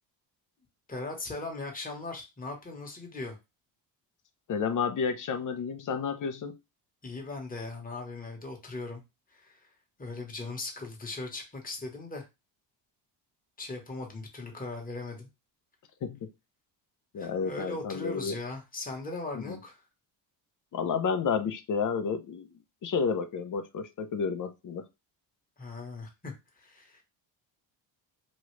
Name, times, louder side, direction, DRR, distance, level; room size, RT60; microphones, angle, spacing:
voice 1, 0.9-3.4 7.0-9.0 9.3-9.6 10.0-12.2 13.6-15.3 17.2-19.8 25.6-27.0, left 3 dB, 20° left, 1.2 m, -39 dB
voice 2, 4.5-6.6 16.0-16.3 17.1-18.4 19.3-19.6 20.7-22.5 22.8-24.9, left 6 dB, 40° left, 0.7 m, -31 dB
3.1 x 2.5 x 3.1 m
cardioid pair, 85°, 47 cm